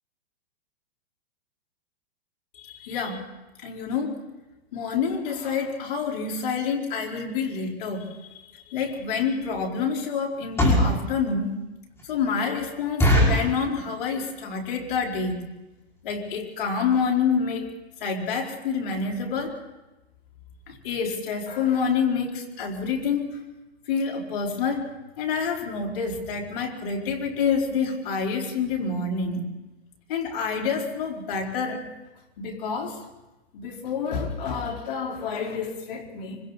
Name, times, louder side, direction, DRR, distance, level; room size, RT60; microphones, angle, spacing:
voice 1, 2.6-3.2 3.6-4.2 4.7-8.1 8.5-11.6 12.0-15.4 16.0-17.7 18.0-19.6 20.7-23.4 23.9-24.9 25.2-29.4 30.1-31.9 32.4-33.0 33.5-36.4, left 5 dB, 55° left, 0 dB, 4.3 m, -27 dB
sound 1, 8.8-8.9 9.4-9.6 10.3-11.0 11.5-11.6 12.0-12.1 12.4-12.5 13.0-13.5 14.1-14.4 14.6-14.7 15.0-15.2 15.8-15.9 16.1-16.3 16.6-16.7 16.9-17.0, equal, 10° left, 5.3 m, -21 dB
25.5 x 25.5 x 4.1 m, 1.1 s
hypercardioid pair, 145°, 31 cm